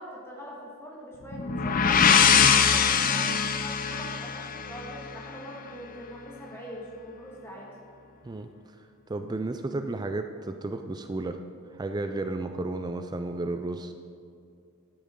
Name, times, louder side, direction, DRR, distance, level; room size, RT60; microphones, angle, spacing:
voice 1, 0.0-2.0 2.5-7.7, equal, 10° left, -4 dB, 1.7 m, -42 dB
sound 1, 1.3-5.1, left 6 dB, 40° left, 0.5 m, -22 dB
voice 2, 9.1-11.4 11.7-13.9, right 2 dB, 20° right, 7 dB, 0.4 m, -32 dB
12.0 x 10.5 x 3.7 m, 2.4 s
head